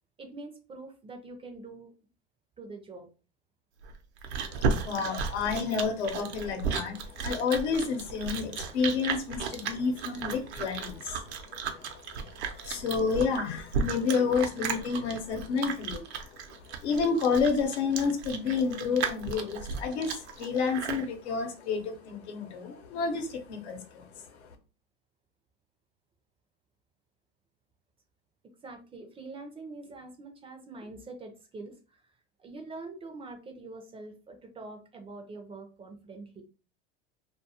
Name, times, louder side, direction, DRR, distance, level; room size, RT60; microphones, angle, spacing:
voice 1, 0.2-1.9 2.6-3.1 28.4-32.0 32.4-36.4, right 3 dB, 20° right, 5 dB, 0.4 m, -44 dB
Chewing mastication, 3.8-21.1, right 6 dB, 85° right, 0.6 m, -34 dB
voice 2, 4.4-24.2, left 5 dB, 90° left, 5 dB, 0.8 m, -30 dB
2.3 x 2.3 x 2.7 m, 0.33 s
supercardioid pair, 120°, 32 cm